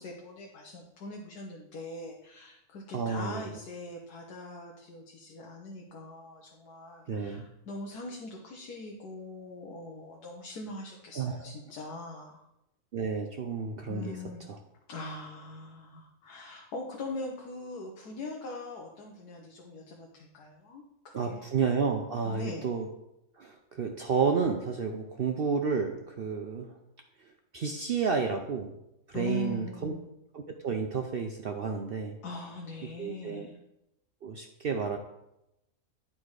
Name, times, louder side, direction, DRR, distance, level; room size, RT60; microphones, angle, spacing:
voice 1, 0.0-12.4 13.9-14.5 14.9-21.4 22.2-22.6 29.1-30.1 32.2-33.6, left 2 dB, 90° left, 0 dB, 1.5 m, -42 dB
voice 2, 2.9-3.4 7.1-7.5 11.2-11.4 12.9-14.2 14.5-14.6 21.1-22.9 23.4-26.7 27.5-28.7 29.1-29.9 30.3-32.2 33.0-33.5 34.2-35.0, right 5 dB, 60° right, 4 dB, 0.6 m, -31 dB
10.0 x 4.2 x 4.8 m, 0.87 s
omnidirectional pair, 1.6 m